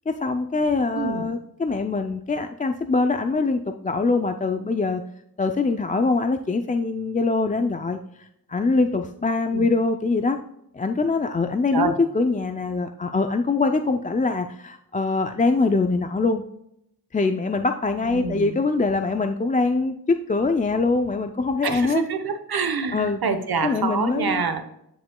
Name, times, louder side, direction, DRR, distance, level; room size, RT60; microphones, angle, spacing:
voice 1, 0.1-5.0 5.4-10.4 10.7-16.4 17.1-22.0 22.9-23.2 23.6-24.6, left 3 dB, 20° left, 7 dB, 0.3 m, -23 dB
voice 2, 0.9-1.3 9.5-9.7 11.7-12.0 18.0-18.6 21.6-24.6, right 5 dB, 65° right, 8 dB, 1.0 m, -26 dB
10.0 x 5.2 x 2.2 m, 0.77 s
wide cardioid pair, 115°, 39 cm